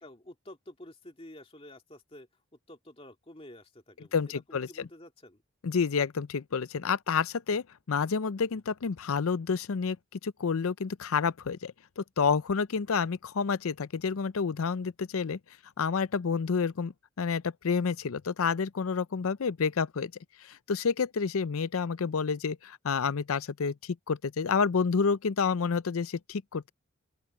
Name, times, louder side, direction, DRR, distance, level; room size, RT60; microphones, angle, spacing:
voice 1, 0.0-2.3 2.7-5.4, left 1 dB, 25° left, 2.4 m, -50 dB
voice 2, 4.1-4.9 5.6-15.4 15.8-20.1 20.4-26.7, left 5 dB, 75° left, 0.5 m, -29 dB
open air
head